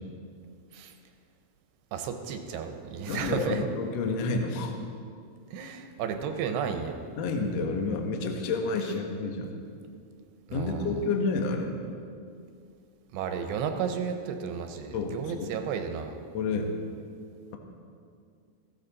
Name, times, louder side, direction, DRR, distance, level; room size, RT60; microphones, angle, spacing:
voice 1, 1.9-3.7 5.5-7.0 10.5-11.1 13.1-16.2, right 7 dB, 80° right, 6 dB, 3.0 m, -33 dB
voice 2, 3.1-4.7 7.2-9.5 10.5-11.7 14.9-15.5 16.3-16.7, left 3 dB, 85° left, 3 dB, 1.4 m, -29 dB
15.5 x 14.5 x 4.1 m, 2.3 s
omnidirectional pair, 5.0 m